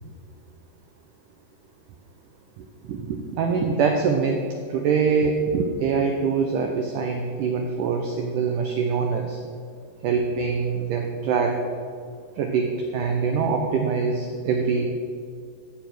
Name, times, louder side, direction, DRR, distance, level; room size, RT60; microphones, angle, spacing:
voice 1, 2.6-4.4 4.7-9.4 10.0-11.6 12.4-14.8, right 5 dB, 85° right, 3 dB, 1.8 m, -24 dB
15.0 x 7.2 x 6.0 m, 2.1 s
omnidirectional pair, 4.8 m